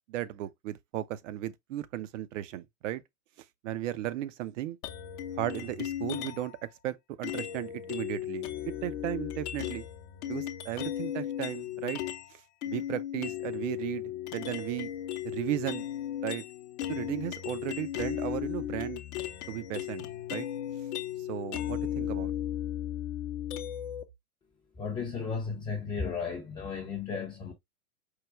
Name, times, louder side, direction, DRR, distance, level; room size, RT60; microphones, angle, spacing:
voice 1, 0.1-3.0 3.6-4.8 5.4-8.5 8.8-9.9 10.3-12.0 12.3-14.0 14.3-14.9 15.2-15.9 16.2-16.4 16.9-19.0 19.5-20.5 21.2-22.3, right 13 dB, 55° right, 0.6 m, -35 dB
sound 1, 4.8-6.6 7.2-12.3 12.6-24.0, left 11 dB, 50° left, 0.7 m, -36 dB
voice 2, 24.7-27.5, left 5 dB, 10° left, 0.5 m, -34 dB
4.7 x 2.2 x 3.4 m
hypercardioid pair, 120°, 44 cm